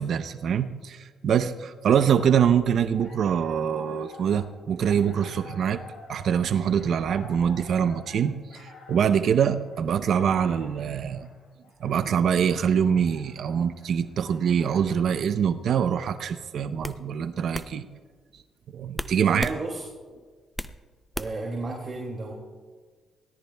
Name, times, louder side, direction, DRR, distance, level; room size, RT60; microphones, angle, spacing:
voice 1, 0.0-5.8 6.1-11.3 11.8-17.9 18.7-19.5, right 8 dB, 65° right, 11 dB, 0.6 m, -24 dB
sound 1, 2.8-15.2, left 3 dB, 75° left, 2.9 m, -49 dB
sound 2, 16.0-16.2 16.8-17.0 17.5-17.7 18.9-19.6 20.0-20.8 21.1-21.5, left 1 dB, 5° left, 0.5 m, -34 dB
voice 2, 19.2-19.8 21.2-22.3, right 3 dB, 40° right, -1 dB, 2.3 m, -32 dB
23.5 x 17.5 x 2.2 m, 1.5 s
cardioid pair, 90°, 0 cm